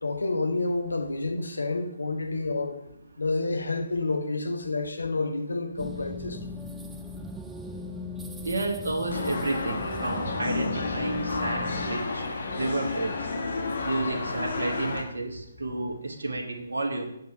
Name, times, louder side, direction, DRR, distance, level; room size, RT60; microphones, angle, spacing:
voice 1, 0.0-2.8 3.2-6.4, left 3 dB, 70° left, 6 dB, 1.2 m, -29 dB
sound 1, 5.8-12.0, left 2 dB, 5° right, 0.4 m, -38 dB
voice 2, 8.4-13.3 13.8-17.1, right 2 dB, 65° right, 2 dB, 1.2 m, -31 dB
sound 2, 9.1-15.0, left 3 dB, 55° left, 1.6 m, -31 dB
7.9 x 5.7 x 5.6 m, 0.77 s
figure-of-eight pair, 140°, 0 cm